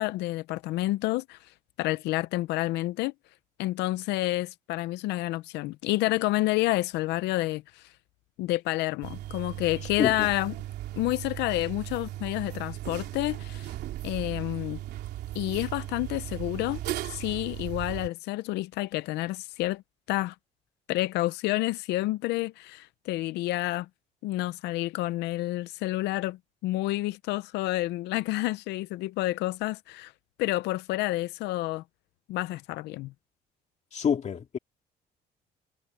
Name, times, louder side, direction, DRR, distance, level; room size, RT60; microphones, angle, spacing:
voice 1, 0.0-1.4 1.8-3.1 3.6-7.8 8.4-10.5 11.0-13.7 14.0-14.8 15.3-16.8 17.0-19.8 20.1-20.3 20.9-23.9 24.2-30.1 30.4-31.8 32.3-33.1, left 18 dB, 85° left, 0.6 m, -29 dB
sound 1, 9.0-18.1, right 14 dB, 75° right, 3.1 m, -37 dB
voice 2, 10.0-10.3 33.9-34.6, left 7 dB, 40° left, 2.4 m, -27 dB
cardioid pair, 110°, 17 cm